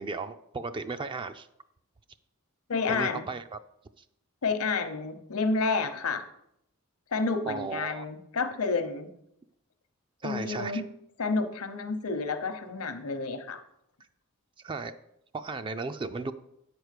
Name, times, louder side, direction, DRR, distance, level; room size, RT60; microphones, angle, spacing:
voice 1, 0.0-1.5 2.9-3.6 7.5-8.0 10.2-10.8 14.6-14.9 15.3-16.3, right 3 dB, 25° right, 10 dB, 0.3 m, -35 dB
voice 2, 2.7-3.2 4.4-6.2 7.1-9.1 10.2-10.9 11.2-13.6, left 4 dB, 80° left, 9 dB, 0.9 m, -30 dB
8.8 x 4.6 x 6.6 m, 0.77 s
head